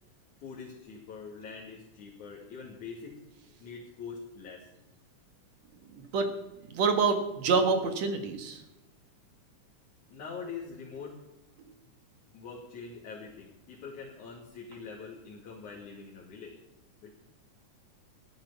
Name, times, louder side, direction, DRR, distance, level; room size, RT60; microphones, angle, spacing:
voice 1, 0.4-3.2 3.6-4.7 10.1-11.2 12.3-16.6 17.0-17.1, left 5 dB, 80° left, -5 dB, 4.0 m, -44 dB
voice 2, 5.9-6.3 6.7-8.6, right 4 dB, 65° right, 7 dB, 2.8 m, -27 dB
14.5 x 11.5 x 7.0 m, 0.98 s
omnidirectional pair, 3.4 m